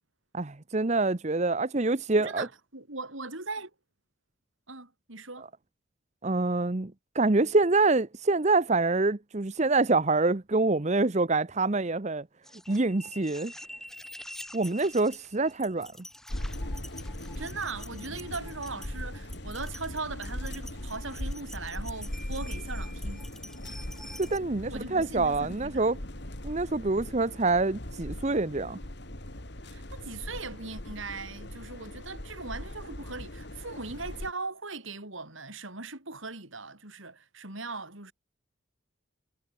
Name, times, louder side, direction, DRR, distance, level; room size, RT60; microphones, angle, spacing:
voice 1, 0.3-2.5 6.2-12.2 12.7-13.5 14.5-15.9 24.2-26.0 26.4-28.8, right 3 dB, 35° right, 0.8 m, -26 dB
voice 2, 2.1-3.7 4.7-5.5 17.4-23.3 24.7-25.9 29.6-38.1, right 3 dB, 75° right, 6.5 m, -39 dB
sound 1, 12.4-24.4, left 1 dB, ahead, 7.1 m, -47 dB
sound 2, 16.3-34.3, left 1 dB, 55° left, 3.3 m, -39 dB
head